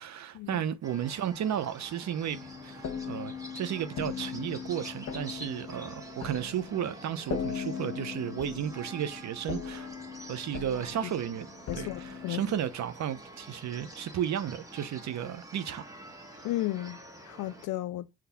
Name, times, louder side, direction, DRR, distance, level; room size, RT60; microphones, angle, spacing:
voice 1, 0.0-9.9 10.3-11.5 11.8-15.8, right 9 dB, 65° right, 0.9 m, -33 dB
sound 1, 0.8-17.7, right 1 dB, 10° right, 1.5 m, -48 dB
sound 2, 2.3-12.7, left 7 dB, 55° left, 1.3 m, -40 dB
voice 2, 11.7-12.4 16.4-17.0 17.3-18.1, left 15 dB, 80° left, 0.5 m, -34 dB
5.9 x 3.2 x 5.8 m
cardioid pair, 90°, 30 cm